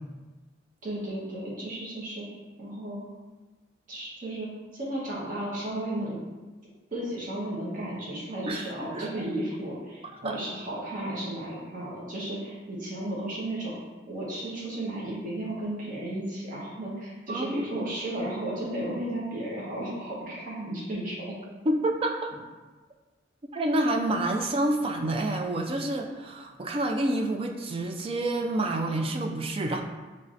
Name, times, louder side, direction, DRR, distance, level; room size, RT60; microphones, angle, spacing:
voice 1, 0.8-2.2 2.6-3.0 3.9-6.2 6.9-13.7 14.1-21.3, right 1 dB, 45° right, -6 dB, 1.0 m, -34 dB
voice 2, 17.3-17.7 21.7-22.3 23.5-29.8, right 1 dB, 30° right, 3 dB, 0.4 m, -28 dB
5.3 x 3.2 x 2.5 m, 1.3 s
head